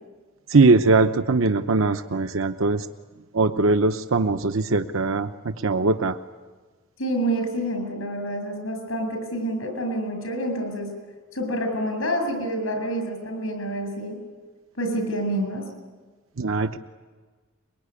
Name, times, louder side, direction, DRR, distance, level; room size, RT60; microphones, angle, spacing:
voice 1, 0.5-2.9 3.3-6.2 16.4-16.8, right 3 dB, 80° right, 9 dB, 0.9 m, -21 dB
voice 2, 7.0-10.9 11.3-14.2 14.8-15.6, right 1 dB, 80° left, 5 dB, 7.9 m, -27 dB
23.5 x 23.0 x 9.9 m, 1.4 s
head